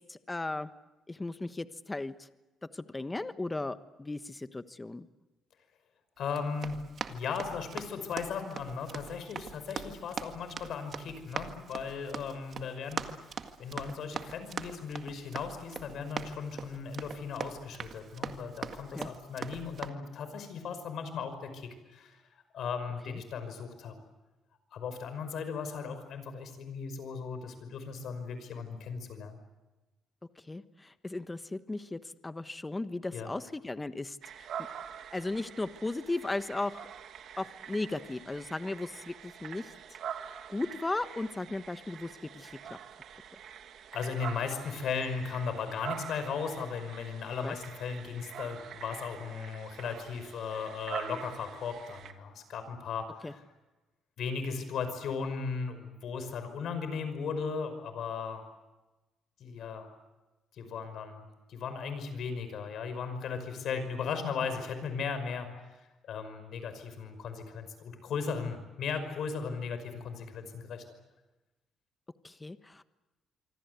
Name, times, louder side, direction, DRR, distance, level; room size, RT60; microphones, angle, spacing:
voice 1, 0.1-0.7 1.1-2.3 2.7-5.1 18.9-19.1 23.1-23.2 30.5-34.5 35.1-36.9 37.4-39.7 40.5-42.8 47.4-47.5 53.2-53.3 72.2-72.8, left 2 dB, 20° left, 11 dB, 1.2 m, -36 dB
voice 2, 6.2-6.8 7.1-13.0 13.6-24.0 24.7-29.4 33.1-33.3 43.9-53.4 54.2-58.4 59.4-59.9 60.5-65.5 66.0-70.8, left 5 dB, 70° left, 9 dB, 5.6 m, -37 dB
Run, 6.3-19.9, right 6 dB, 55° right, 1.8 m, -42 dB
sound 1, 34.2-52.1, right 8 dB, 70° right, 2.0 m, -45 dB
26.5 x 24.5 x 8.2 m, 1.1 s
cardioid pair, 90°, 0 cm